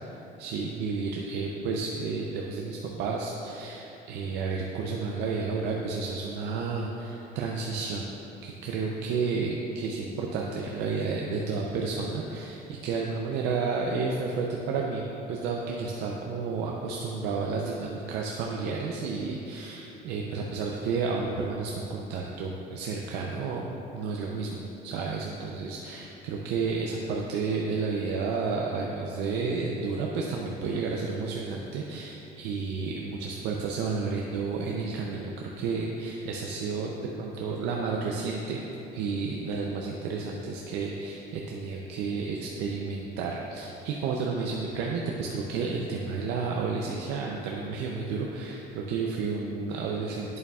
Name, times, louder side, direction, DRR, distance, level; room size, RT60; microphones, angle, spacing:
voice 1, 0.0-8.1 8.4-23.7 23.9-36.9 37.2-38.7 38.9-50.4, right 4 dB, 90° right, -1 dB, 0.5 m, -31 dB
8.6 x 6.7 x 2.4 m, 3.0 s
cardioid pair, 110°, 17 cm